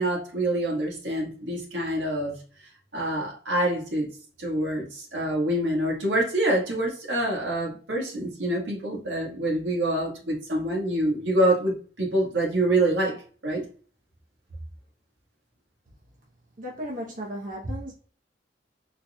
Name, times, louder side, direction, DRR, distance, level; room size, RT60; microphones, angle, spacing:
voice 1, 0.0-2.4 2.9-4.1 4.4-13.6, right 1 dB, 85° right, 1.6 m, -26 dB
voice 2, 16.6-17.9, equal, 50° right, 0.9 m, -35 dB
4.2 x 3.1 x 2.3 m
head